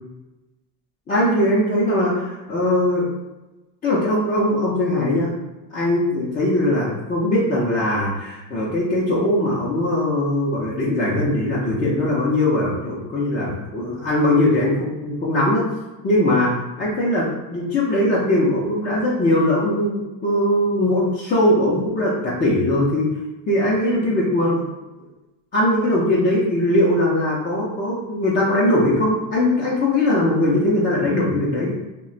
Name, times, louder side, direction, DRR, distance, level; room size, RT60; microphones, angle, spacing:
voice 1, 1.1-3.1 3.8-5.3 5.7-15.7 16.0-16.5 16.8-23.1 23.5-24.7 25.5-31.7, left 1 dB, 25° left, -7 dB, 0.4 m, -20 dB
2.4 x 2.1 x 3.7 m, 1.1 s
cardioid pair, 140°, 46 cm